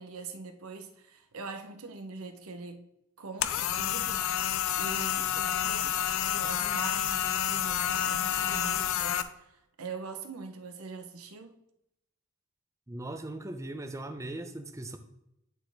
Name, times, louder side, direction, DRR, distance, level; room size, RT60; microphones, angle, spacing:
voice 1, 0.0-2.9 3.2-4.3 4.8-11.6, right 4 dB, 85° right, 0.8 m, -43 dB
sound 1, 3.4-9.2, left 10 dB, 65° left, 0.4 m, -29 dB
voice 2, 12.9-15.0, right 2 dB, 15° right, 0.5 m, -39 dB
10.5 x 4.2 x 3.4 m
head